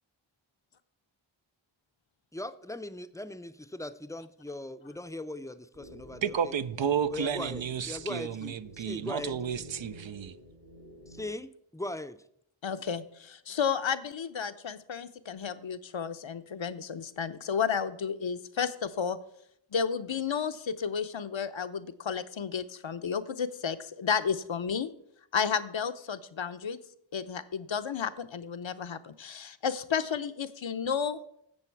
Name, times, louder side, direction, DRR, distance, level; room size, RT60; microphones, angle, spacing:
voice 1, 2.3-6.5 7.1-9.4 11.1-12.2, left 1 dB, 5° left, 0.5 m, -39 dB
sound 1, 5.7-11.2, equal, 85° right, 5.1 m, -49 dB
voice 2, 6.2-10.4, right 8 dB, 65° right, 0.6 m, -32 dB
voice 3, 12.6-19.2 19.7-24.9 25.3-26.8 27.1-31.2, left 7 dB, 70° left, 0.7 m, -32 dB
11.5 x 7.6 x 4.6 m
wide cardioid pair, 45°, 48 cm